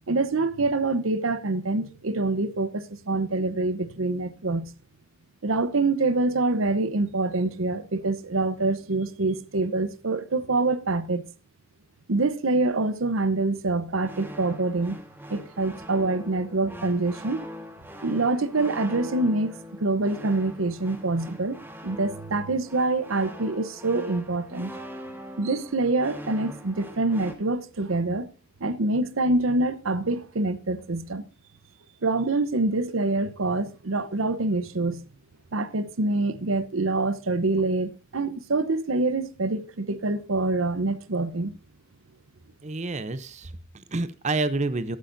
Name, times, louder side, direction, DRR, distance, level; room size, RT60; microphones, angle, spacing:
voice 1, 0.1-4.7 5.4-11.2 12.1-15.0 15.3-17.4 18.0-21.6 21.8-24.7 25.4-28.3 28.6-31.2 32.0-35.0 35.5-41.5, right 2 dB, 90° right, 0.9 m, -25 dB
sound 1, 14.0-27.4, equal, 10° right, 1.5 m, -42 dB
voice 2, 42.6-45.0, right 3 dB, 35° right, 0.7 m, -29 dB
22.5 x 8.3 x 2.6 m
head